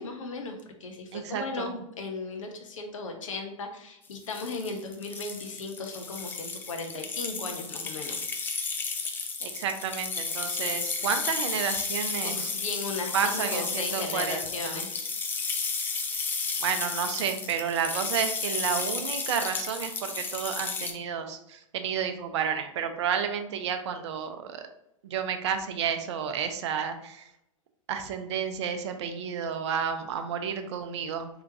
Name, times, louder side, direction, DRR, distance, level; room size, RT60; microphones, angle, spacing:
voice 1, 0.0-8.2 12.2-14.9, left 3 dB, 70° left, 4 dB, 0.7 m, -36 dB
voice 2, 1.1-1.7 9.4-12.5 13.1-14.8 16.6-24.6 25.0-27.3 27.9-31.3, right 7 dB, 55° right, 7 dB, 0.5 m, -31 dB
sound 1, 4.1-20.9, left 4 dB, 10° left, 0.3 m, -33 dB
3.5 x 2.9 x 2.6 m, 0.81 s
figure-of-eight pair, 100°, 17 cm